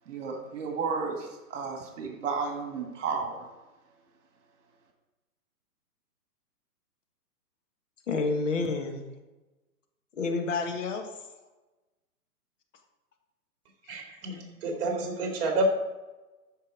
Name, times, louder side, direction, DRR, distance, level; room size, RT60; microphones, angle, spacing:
voice 1, 0.1-3.5, right 5 dB, 50° right, 3 dB, 2.2 m, -33 dB
voice 2, 8.1-9.1 10.1-11.1, left 3 dB, 50° left, 4 dB, 1.7 m, -29 dB
voice 3, 13.9-15.6, right 3 dB, 35° right, 2 dB, 2.4 m, -30 dB
13.5 x 5.6 x 5.0 m, 1.1 s
hypercardioid pair, 155°, 48 cm